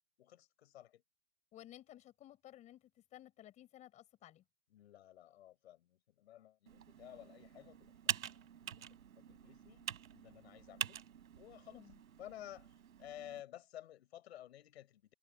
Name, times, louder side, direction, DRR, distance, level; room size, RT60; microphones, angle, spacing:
voice 1, 0.2-1.0 4.7-8.8 9.2-11.0 11.3-11.8 12.2-12.7 13.0-15.1, left 12 dB, 50° left, 7.8 m, -54 dB
voice 2, 1.5-4.4 11.7-12.0, left 13 dB, 15° left, 6.8 m, -56 dB
Computer keyboard, 6.7-13.4, right 10 dB, 75° right, 3.8 m, -45 dB
hypercardioid pair, 170°, 42 cm